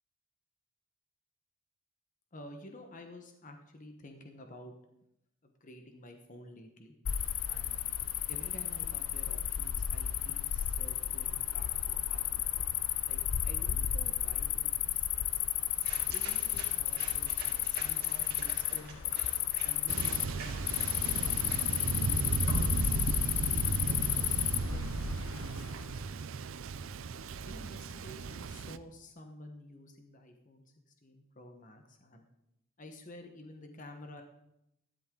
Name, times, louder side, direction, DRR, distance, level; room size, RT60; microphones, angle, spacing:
voice 1, 2.3-4.7 5.4-6.9 7.5-7.8 8.3-12.4 13.1-15.5 16.1-19.0 19.6-20.6 21.8-23.1 23.9-26.6 27.5-30.6 31.0-32.2 32.8-34.2, left 1 dB, 40° left, 4 dB, 1.2 m, -51 dB
Cricket, 7.0-26.0, left 11 dB, 75° left, 0.5 m, -33 dB
sound 1, 15.2-22.8, right 3 dB, 50° right, 2.5 m, -47 dB
Thunder, 19.9-28.8, right 4 dB, 70° right, 0.5 m, -35 dB
13.0 x 12.0 x 3.8 m, 0.81 s
head